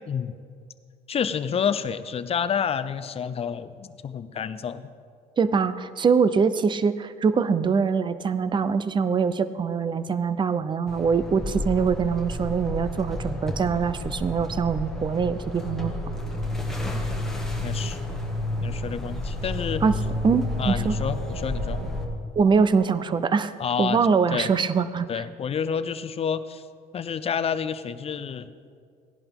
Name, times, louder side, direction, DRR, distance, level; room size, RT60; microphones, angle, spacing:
voice 1, 1.1-4.9 17.6-18.0 18.6-19.8 20.6-21.9 23.6-24.0 24.3-24.5 25.1-26.6 26.9-28.5, left 7 dB, 35° left, 13 dB, 0.6 m, -29 dB
voice 2, 5.4-15.9 19.8-20.0 20.2-21.0 22.4-23.5 23.8-25.2, right 5 dB, 30° right, 14 dB, 0.5 m, -23 dB
sound 1, 10.9-22.0, left 1 dB, 5° left, 1.8 m, -33 dB
sound 2, 15.6-22.1, left 1 dB, 50° right, 2.0 m, -31 dB
17.0 x 11.0 x 3.6 m, 2.2 s
cardioid pair, 110°, 17 cm